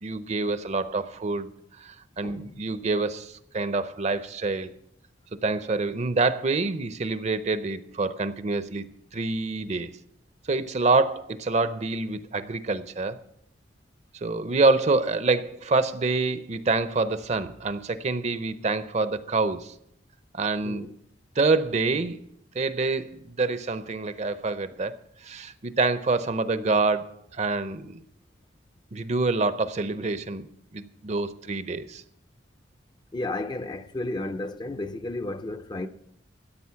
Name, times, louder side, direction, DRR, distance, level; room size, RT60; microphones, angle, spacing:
voice 1, 0.0-4.7 5.4-9.9 10.5-13.2 14.2-19.7 20.3-20.8 21.4-22.2 22.5-25.0 25.2-28.0 28.9-30.5 30.7-32.0, right 3 dB, 35° right, 0.6 m, -26 dB
voice 2, 2.2-2.6 20.6-20.9 33.1-35.9, left 2 dB, 25° left, 0.5 m, -33 dB
14.0 x 9.0 x 5.7 m
head